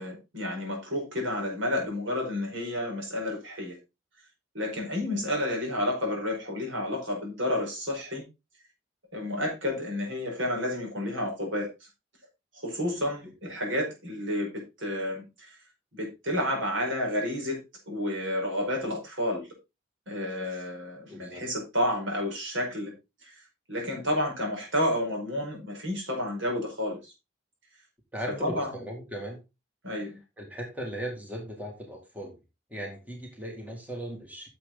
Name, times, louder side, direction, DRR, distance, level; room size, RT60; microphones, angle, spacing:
voice 1, 0.0-3.8 4.5-8.2 9.1-11.7 12.6-15.5 15.9-17.6 17.9-19.4 20.1-22.9 23.2-23.3 23.7-27.1 28.4-28.7 29.8-30.2, left 1 dB, 80° right, 1 dB, 5.0 m, -30 dB
voice 2, 21.1-21.4 28.1-29.4 30.1-32.4 32.7-34.5, equal, 10° right, 1 dB, 2.1 m, -38 dB
10.5 x 6.9 x 3.8 m, 0.26 s
head